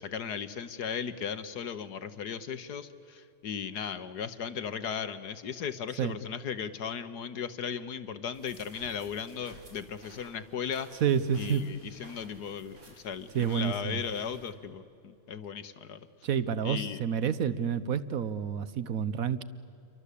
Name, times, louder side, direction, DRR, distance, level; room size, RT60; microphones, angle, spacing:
voice 1, 0.0-11.0 11.3-16.0 16.6-17.0, left 7 dB, 55° left, 12 dB, 1.4 m, -37 dB
sound 1, 8.3-14.5, right 1 dB, 85° right, 5.8 m, -55 dB
voice 2, 11.0-11.6 13.3-14.0 16.2-19.4, right 8 dB, 60° right, 14 dB, 0.9 m, -29 dB
29.0 x 24.0 x 8.4 m, 2.6 s
omnidirectional pair, 2.3 m